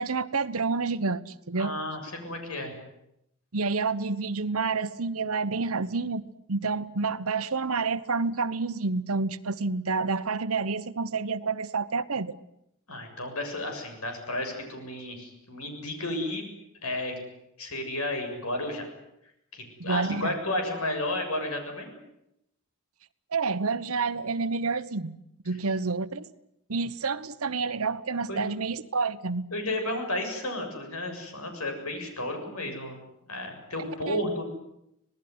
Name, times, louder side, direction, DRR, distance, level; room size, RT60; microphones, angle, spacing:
voice 1, 0.0-1.7 3.5-6.2 6.5-12.4 19.8-20.3 23.3-25.2 25.4-26.3 26.7-29.5 34.1-34.2, right 4 dB, 85° right, 1.1 m, -29 dB
voice 2, 1.6-2.8 12.9-16.5 16.8-17.2 17.6-18.9 19.5-21.9 28.3-28.4 29.5-33.0 33.3-34.4, left 1 dB, 90° left, 7.2 m, -32 dB
26.5 x 19.0 x 9.7 m
head